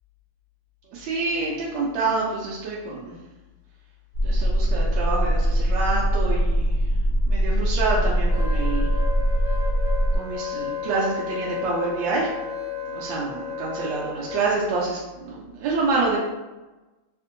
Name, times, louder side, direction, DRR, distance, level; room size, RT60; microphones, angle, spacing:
voice 1, 0.9-3.1 4.2-6.7 7.3-8.9 10.1-12.3 12.9-16.2, right 3 dB, 75° right, -5 dB, 1.0 m, -27 dB
sound 1, 4.1-10.2, equal, 50° left, 1.4 m, -22 dB
Wind instrument woodwind instrument, 8.3-14.5, left 6 dB, 85° left, 1.5 m, -33 dB
3.5 x 2.5 x 2.5 m, 1.1 s
omnidirectional pair, 2.4 m